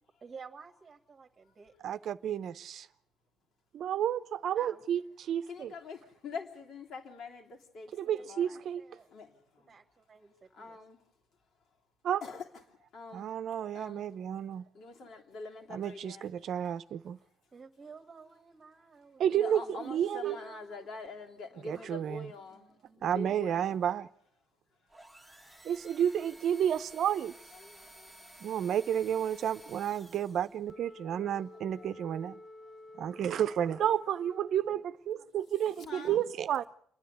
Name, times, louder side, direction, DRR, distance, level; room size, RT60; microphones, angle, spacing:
voice 1, 0.0-1.7 4.6-4.8 8.0-9.1 9.7-10.8 17.5-19.8 20.2-20.8 21.7-22.0 22.5-23.2, right 5 dB, 30° right, 1.3 m, -53 dB
voice 2, 1.8-2.9 3.7-5.7 7.9-8.8 12.0-12.2 13.1-14.6 15.7-17.2 19.2-20.4 21.6-22.3 23.0-24.1 25.6-27.3 28.4-32.4 33.0-36.6, right 9 dB, 55° right, 0.7 m, -31 dB
voice 3, 5.5-7.9 8.2-8.6 9.1-9.3 9.6-9.8 10.5-11.0 12.2-12.4 12.9-13.3 13.7-14.1 14.7-16.3 19.3-23.7 25.4-25.5 27.5-28.1 31.8-31.9 35.9-36.2, left 4 dB, 55° left, 3.1 m, -45 dB
sound 1, 24.9-30.7, right 1 dB, 5° left, 1.7 m, -54 dB
Wind instrument woodwind instrument, 30.6-35.0, left 2 dB, 30° left, 0.8 m, -51 dB
28.0 x 10.0 x 9.5 m
cardioid pair, 120°, 0 cm